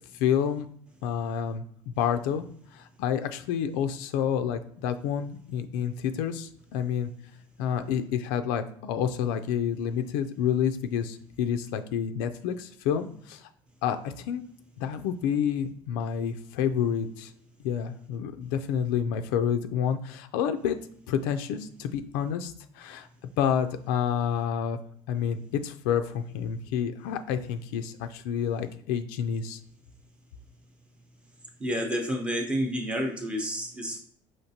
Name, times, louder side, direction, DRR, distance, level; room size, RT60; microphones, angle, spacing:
voice 1, 0.1-0.7 1.0-2.5 2.7-7.1 7.6-13.5 13.8-14.4 14.8-17.3 17.6-20.8 21.1-23.1 23.4-24.8 25.1-29.6, left 8 dB, 90° left, 7 dB, 0.4 m, -29 dB
voice 2, 31.6-34.0, equal, 10° right, 2 dB, 0.7 m, -29 dB
5.8 x 2.9 x 2.8 m, 0.62 s
cardioid pair, 170°, 11 cm